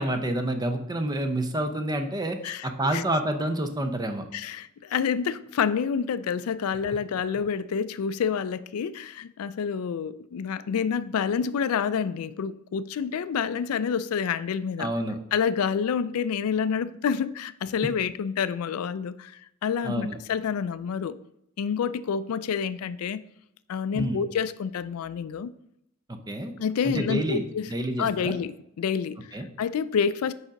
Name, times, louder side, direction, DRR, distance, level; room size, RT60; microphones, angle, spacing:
voice 1, 0.0-4.2 14.8-15.2 17.8-17.9 19.8-20.2 23.9-24.3 26.1-26.5 26.8-28.4 29.3-29.5, right 1 dB, 20° right, 0.6 m, -28 dB
voice 2, 4.3-14.9 15.3-19.3 19.6-21.2 21.6-23.2 23.7-25.5 26.6-27.7 28.0-29.2 29.6-30.3, left 7 dB, 80° left, 0.4 m, -28 dB
5.0 x 4.9 x 5.2 m
head